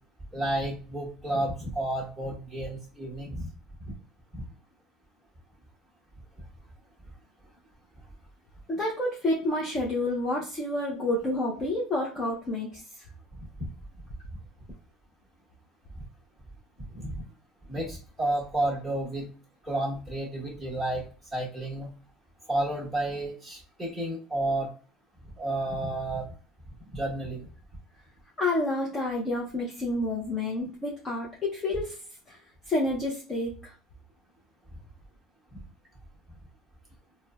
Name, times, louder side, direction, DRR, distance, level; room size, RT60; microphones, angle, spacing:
voice 1, 0.3-3.5 4.3-4.4 16.9-17.1 17.7-19.3 19.7-21.0 21.3-21.9 22.5-24.7 25.4-26.3 26.9-27.4, right 1 dB, ahead, -6 dB, 1.2 m, -31 dB
voice 2, 8.7-12.8 28.4-32.0 32.3-32.4 32.7-33.5, left 1 dB, 20° left, -4 dB, 0.6 m, -29 dB
4.1 x 2.0 x 2.3 m, 0.38 s
cardioid pair, 175°, 0 cm